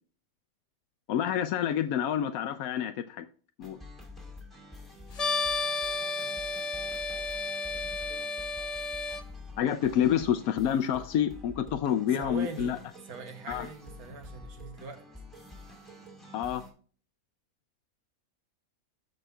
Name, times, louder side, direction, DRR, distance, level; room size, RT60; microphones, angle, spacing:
voice 1, 1.1-3.3 3.6-3.8 9.6-12.8 13.5-13.7 16.3-16.6, left 9 dB, 80° left, 8 dB, 1.1 m, -28 dB
sound 1, 3.6-16.7, left 2 dB, ahead, 2.3 m, -48 dB
sound 2, 5.1-9.2, left 3 dB, 35° left, 0.6 m, -32 dB
voice 2, 7.1-7.8 8.1-8.4 12.1-12.8 13.0-15.2, right 4 dB, 85° right, 6 dB, 1.6 m, -43 dB
13.5 x 5.4 x 2.3 m, 0.41 s
omnidirectional pair, 1.5 m